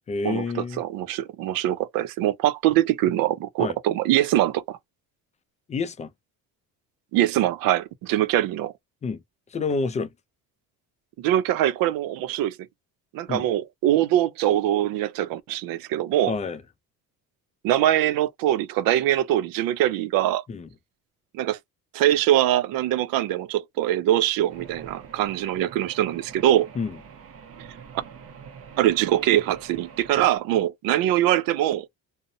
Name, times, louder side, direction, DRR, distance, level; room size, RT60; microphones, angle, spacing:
voice 1, 0.1-0.8 3.6-3.8 5.7-6.1 9.0-9.2 9.5-10.1 13.3-13.5 16.3-16.6 20.5-20.7 26.8-27.0, left 4 dB, 20° left, 0.3 m, -28 dB
voice 2, 0.8-4.8 7.1-8.7 11.2-12.6 13.1-16.3 17.6-20.4 21.3-21.6 21.9-26.7 28.8-31.9, right 13 dB, 90° right, 0.5 m, -23 dB
sound 1, 24.5-30.4, right 6 dB, 45° right, 0.6 m, -45 dB
2.6 x 2.0 x 2.6 m
cardioid pair, 125°, 33 cm